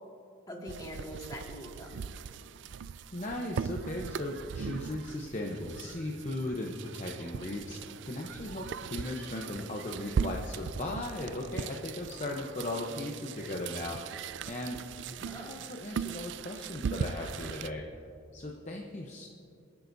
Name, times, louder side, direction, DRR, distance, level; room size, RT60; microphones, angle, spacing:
voice 1, 0.5-2.1 7.8-7.9 15.2-15.6, equal, 20° left, -2 dB, 2.0 m, -43 dB
sound 1, 0.7-17.7, right 6 dB, 60° right, 0.3 m, -39 dB
voice 2, 3.1-14.0 14.5-14.8 15.1-17.8 18.3-19.3, left 1 dB, 35° left, 0 dB, 0.8 m, -37 dB
26.0 x 10.5 x 2.7 m, 2.6 s
head